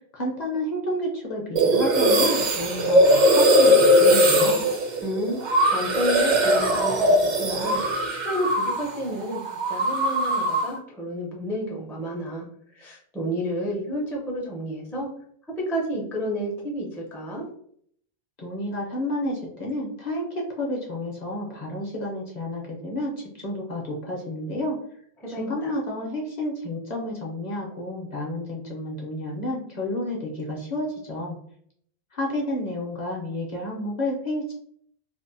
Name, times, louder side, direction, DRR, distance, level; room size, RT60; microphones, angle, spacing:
voice 1, 0.1-4.6 18.4-24.8 25.4-31.4 32.1-34.5, left 1 dB, 50° left, -2 dB, 0.6 m, -30 dB
sound 1, 1.6-9.0 9.2-10.8, equal, 55° right, 0.6 m, -20 dB
voice 2, 5.0-5.4 5.7-7.8 8.1-12.5 12.7-15.1 15.6-17.5 25.2-25.7, equal, 5° left, -3 dB, 0.3 m, -30 dB
2.6 x 2.1 x 2.5 m, 0.64 s
omnidirectional pair, 1.1 m